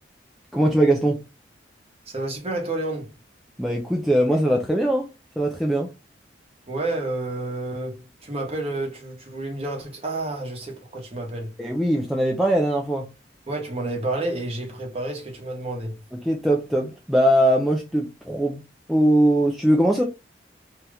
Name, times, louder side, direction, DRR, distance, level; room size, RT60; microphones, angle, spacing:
voice 1, 0.5-1.2 3.6-5.0 5.4-5.9 11.6-13.1 16.2-18.6 18.9-20.0, right 1 dB, ahead, 0.3 m, -21 dB
voice 2, 2.1-3.1 6.7-11.5 13.5-16.0, right 2 dB, 35° right, 1.0 m, -30 dB
2.8 x 2.4 x 3.2 m
head